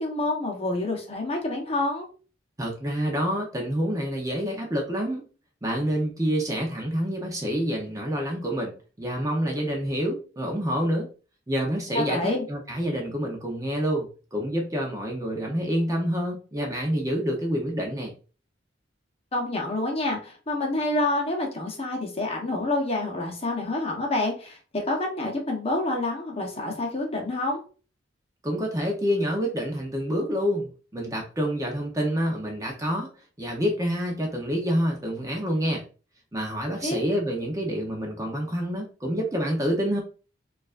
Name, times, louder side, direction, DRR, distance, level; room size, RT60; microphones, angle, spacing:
voice 1, 0.0-2.1 11.9-12.4 19.3-27.6 36.8-37.0, left 2 dB, 30° left, 0 dB, 0.9 m, -28 dB
voice 2, 2.6-5.3 5.6-11.1 11.5-18.1 28.4-33.1 33.4-35.8 36.3-40.0, equal, 20° right, 0 dB, 0.7 m, -27 dB
4.5 x 2.5 x 2.4 m, 0.37 s
head